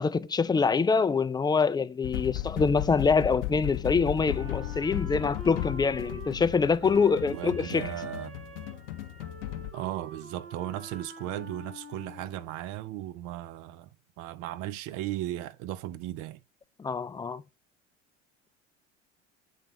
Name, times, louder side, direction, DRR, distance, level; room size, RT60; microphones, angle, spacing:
voice 1, 0.0-7.9 16.8-17.4, left 5 dB, 10° left, 0.4 m, -25 dB
sound 1, 2.0-9.7, left 14 dB, 70° left, 0.8 m, -35 dB
Wind instrument woodwind instrument, 4.3-12.5, right 3 dB, 35° right, 3.8 m, -45 dB
voice 2, 7.3-8.4 9.7-13.9 14.2-16.4, right 14 dB, 55° right, 0.7 m, -36 dB
7.8 x 4.1 x 4.6 m
hypercardioid pair, 70°, 37 cm